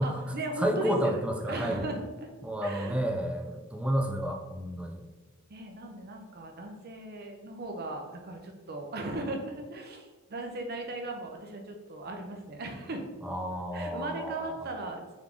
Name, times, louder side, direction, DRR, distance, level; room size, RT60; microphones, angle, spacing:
voice 1, 0.0-2.3 2.6-3.1 5.5-13.0 13.5-15.0, right 2 dB, 45° right, 3 dB, 0.6 m, -37 dB
voice 2, 0.6-1.8 2.4-5.0 13.2-14.5, equal, 5° right, 3 dB, 0.3 m, -31 dB
3.7 x 3.4 x 3.6 m, 1.2 s
head